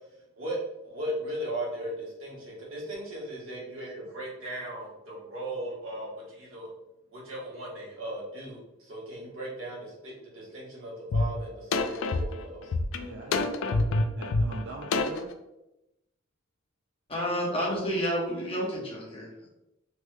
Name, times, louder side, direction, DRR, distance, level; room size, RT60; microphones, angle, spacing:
voice 1, 0.4-6.7 7.1-12.7, right 1 dB, 90° right, -5 dB, 1.3 m, -37 dB
sound 1, 11.1-11.2 11.7-15.3, left 3 dB, 75° left, 0.3 m, -27 dB
voice 2, 13.0-15.3, right 2 dB, 60° right, -2 dB, 0.4 m, -42 dB
voice 3, 17.1-19.5, equal, 30° left, -3 dB, 0.9 m, -30 dB
3.2 x 2.2 x 3.1 m, 0.91 s
head